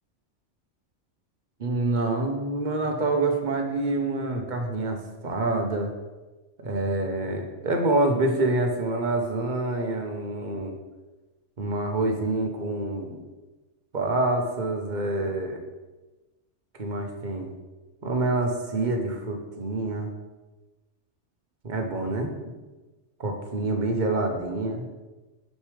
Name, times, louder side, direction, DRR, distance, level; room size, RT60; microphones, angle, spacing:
voice 1, 1.6-5.9 6.6-10.7 11.6-13.2 13.9-15.6 16.8-17.5 18.0-20.1 21.6-22.3 23.2-24.8, right 2 dB, 45° right, 3 dB, 1.0 m, -27 dB
6.6 x 6.5 x 3.3 m, 1.2 s
omnidirectional pair, 1.2 m